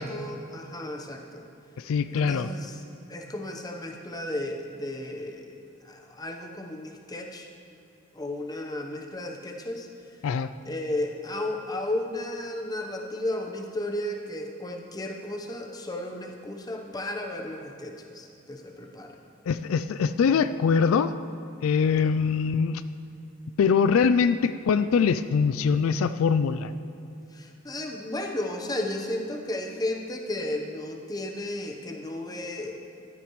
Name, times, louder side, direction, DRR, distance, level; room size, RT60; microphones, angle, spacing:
voice 1, 0.0-1.4 2.1-2.8 3.1-5.6 5.8-7.5 8.1-9.9 10.7-19.2 27.3-32.8, left 1 dB, 20° left, 2 dB, 0.9 m, -34 dB
voice 2, 1.8-2.5 10.2-10.5 19.5-21.1 21.6-22.8 23.6-26.7, left 6 dB, 80° left, 12 dB, 0.3 m, -23 dB
15.0 x 12.0 x 3.1 m, 2.8 s
head